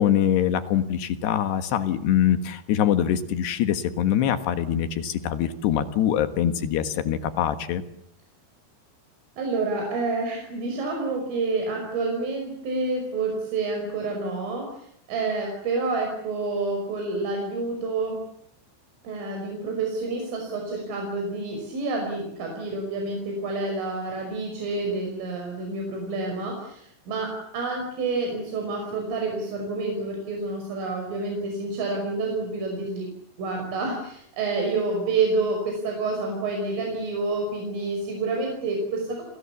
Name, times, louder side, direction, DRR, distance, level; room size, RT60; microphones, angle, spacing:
voice 1, 0.0-7.8, left 10 dB, 65° left, 9 dB, 3.3 m, -23 dB
voice 2, 9.4-18.2 19.0-33.1 33.4-39.2, right 3 dB, 75° right, 1 dB, 8.2 m, -28 dB
30.0 x 25.5 x 7.3 m, 0.72 s
omnidirectional pair, 5.7 m